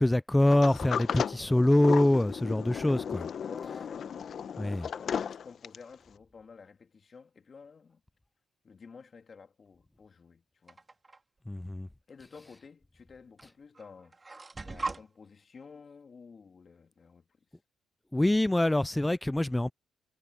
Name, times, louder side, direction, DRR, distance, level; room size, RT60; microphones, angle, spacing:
voice 1, 0.0-3.3 4.6-4.9 11.5-11.9 18.1-19.7, left 1 dB, 10° left, 0.4 m, -25 dB
Sliding door, 0.5-5.9, left 7 dB, 55° left, 1.0 m, -35 dB
voice 2, 3.2-4.1 4.6-8.0 8.6-10.8 12.1-14.2 14.6-17.3, left 5 dB, 40° left, 3.0 m, -51 dB
sound 1, 10.7-11.2 12.3-12.4 13.4-13.5 13.7-15.0, right 3 dB, 25° right, 2.3 m, -38 dB
cardioid pair, 90°, 0 cm